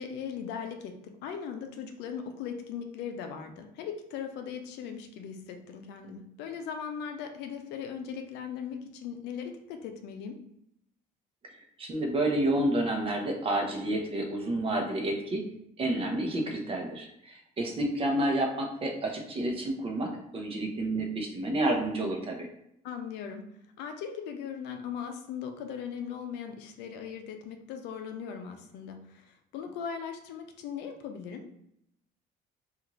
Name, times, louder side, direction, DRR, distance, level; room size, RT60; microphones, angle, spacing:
voice 1, 0.0-10.4 22.8-23.4 23.8-31.5, left 7 dB, 90° left, 5 dB, 0.4 m, -39 dB
voice 2, 11.8-15.4 15.8-22.5, right 1 dB, 35° right, 2 dB, 0.7 m, -29 dB
2.5 x 2.4 x 3.0 m, 0.76 s
cardioid pair, 110°, 17 cm